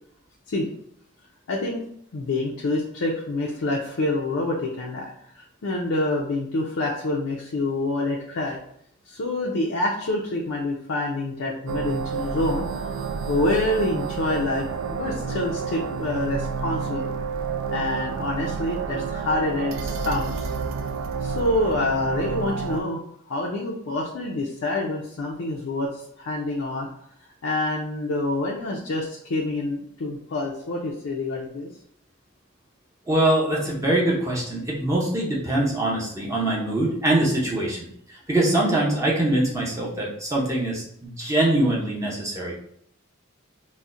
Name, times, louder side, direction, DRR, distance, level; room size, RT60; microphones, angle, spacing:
voice 1, 1.5-1.8 2.1-8.6 9.1-12.7 13.3-17.1 17.7-20.5 21.2-26.9 27.4-31.7, left 2 dB, 90° left, -2 dB, 0.5 m, -27 dB
sound 1, 11.7-22.8, right 5 dB, 70° right, 0.3 m, -29 dB
voice 2, 33.1-37.9 38.3-42.5, right 1 dB, 15° right, -4 dB, 0.6 m, -23 dB
4.0 x 2.1 x 2.4 m, 0.69 s
head